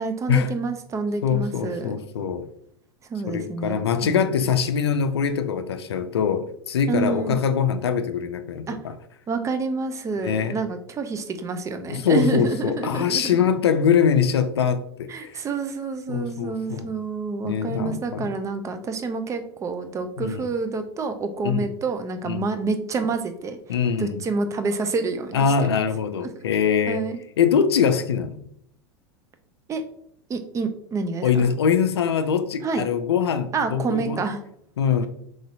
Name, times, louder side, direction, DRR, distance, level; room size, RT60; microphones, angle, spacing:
voice 1, 0.0-2.0 3.1-4.4 6.9-7.4 8.7-8.8 9.3-13.4 15.1-23.6 24.0-25.8 26.2-26.4 26.9-27.2 29.7-29.8 30.3-31.5 32.6-32.8 33.5-34.4, right 4 dB, 25° right, 8 dB, 0.4 m, -28 dB
voice 2, 1.2-2.5 3.3-8.9 10.2-10.5 11.9-15.4 16.1-16.8 17.4-18.3 20.2-20.5 21.4-21.7 22.3-22.5 23.7-24.2 25.3-27.0 27.4-28.4 31.2-34.2 34.8-35.1, left 7 dB, 80° left, 10 dB, 0.4 m, -23 dB
3.9 x 3.1 x 2.6 m, 0.71 s
hypercardioid pair, 90°, 13 cm